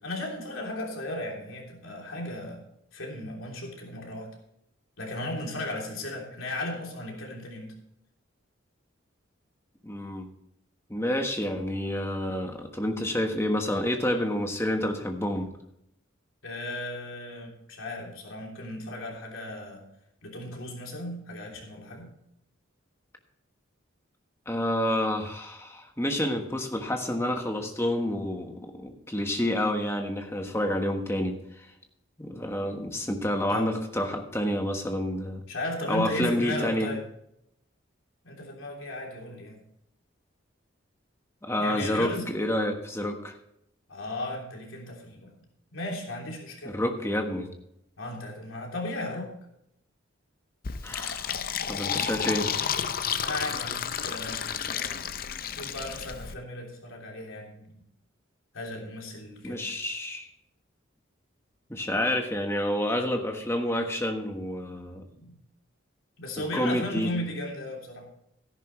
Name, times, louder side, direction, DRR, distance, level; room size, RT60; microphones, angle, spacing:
voice 1, 0.0-2.6 2.9-4.3 5.0-7.7 16.4-19.8 20.2-22.1 33.5-33.8 35.5-37.0 38.2-39.6 41.6-42.3 43.9-45.4 45.7-46.8 48.0-49.3 53.2-55.0 55.5-57.7 58.5-59.6 65.1-65.4 66.2-68.1, left 1 dB, 85° left, -1 dB, 3.3 m, -36 dB
voice 2, 9.8-10.3 10.9-15.5 24.5-31.7 32.2-35.4 35.9-36.9 41.4-43.4 46.6-47.5 50.8-51.4 51.7-52.5 59.4-60.3 61.7-65.0 66.5-67.1, left 1 dB, 15° left, 4 dB, 1.3 m, -29 dB
Fill (with liquid), 50.6-56.3, left 7 dB, 45° left, 0.6 m, -31 dB
13.5 x 11.0 x 3.2 m, 0.77 s
head